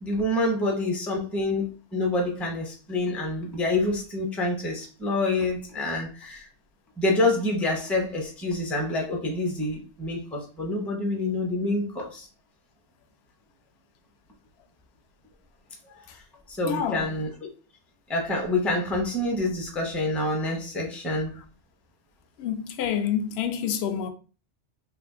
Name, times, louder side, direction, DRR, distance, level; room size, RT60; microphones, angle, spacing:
voice 1, 0.0-6.5 7.0-12.3 16.1-16.2 16.5-17.3 18.1-21.3, left 2 dB, ahead, 0.5 m, -27 dB
voice 2, 16.6-17.1 22.4-24.1, left 8 dB, 65° left, 0.8 m, -28 dB
2.9 x 2.5 x 3.6 m
omnidirectional pair, 1.2 m